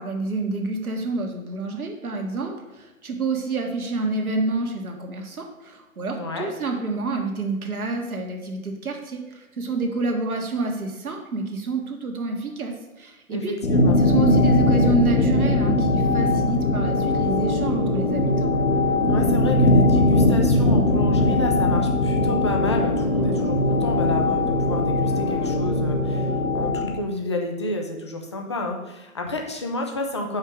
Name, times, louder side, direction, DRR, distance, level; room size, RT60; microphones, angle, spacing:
voice 1, 0.0-13.6 14.0-18.5, right 3 dB, 75° right, 3 dB, 1.5 m, -28 dB
voice 2, 6.1-6.5 13.3-14.0 19.1-30.4, left 2 dB, 20° left, 2 dB, 0.5 m, -30 dB
sound 1, 13.6-27.0, left 2 dB, 80° left, 1.2 m, -20 dB
5.6 x 4.6 x 6.1 m, 1.1 s
figure-of-eight pair, 130°, 44 cm